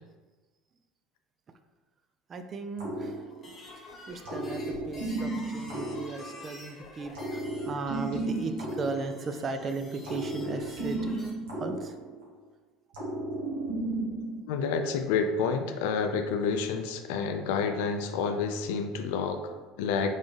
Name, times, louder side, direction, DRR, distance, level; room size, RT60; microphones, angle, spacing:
voice 1, 2.3-3.2 3.8-11.2 11.5-12.0, right 3 dB, 40° right, 8 dB, 0.4 m, -36 dB
sound 1, 2.8-3.8 4.2-6.7 7.1-9.6 10.0-12.5 12.9-14.4, right 2 dB, 80° right, 1.4 m, -34 dB
sound 2, 3.3-11.3, left 2 dB, 30° left, 1.2 m, -49 dB
voice 2, 14.4-20.1, left 5 dB, 75° left, 7 dB, 0.4 m, -29 dB
4.0 x 3.5 x 3.3 m, 1.3 s
hypercardioid pair, 80°, 0 cm